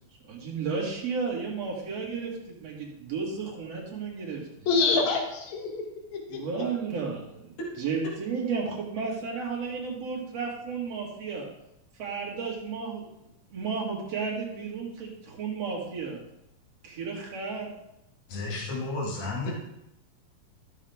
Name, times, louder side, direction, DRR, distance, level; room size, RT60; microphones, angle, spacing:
voice 1, 0.2-4.4 6.3-11.5 12.0-13.0 13.5-16.2 16.8-17.7 19.4-19.5, right 5 dB, 55° right, -3 dB, 3.1 m, -33 dB
voice 2, 4.7-5.8 6.1-6.4 19.5-19.6, left 4 dB, 65° left, 3 dB, 2.7 m, -26 dB
voice 3, 18.3-19.5, left 2 dB, 50° left, -3 dB, 2.9 m, -32 dB
13.5 x 6.7 x 3.5 m, 0.84 s
omnidirectional pair, 3.6 m